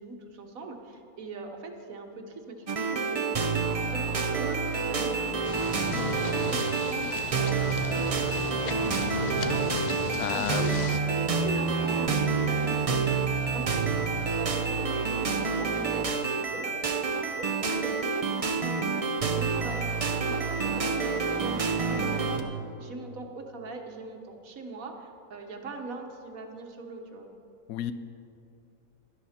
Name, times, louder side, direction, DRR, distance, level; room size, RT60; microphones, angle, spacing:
voice 1, 0.0-3.3 3.7-7.6 7.9-10.8 11.4-19.0 19.3-19.9 20.2-27.3, right 3 dB, 75° right, 4 dB, 1.6 m, -41 dB
sound 1, 2.7-22.4, right 4 dB, 35° right, 0.6 m, -28 dB
sound 2, 5.4-11.0, left 5 dB, 45° left, 0.6 m, -36 dB
voice 2, 10.2-10.9 27.7-27.9, left 10 dB, 85° left, 12 dB, 1.1 m, -32 dB
16.5 x 11.5 x 4.3 m, 2.6 s
omnidirectional pair, 1.5 m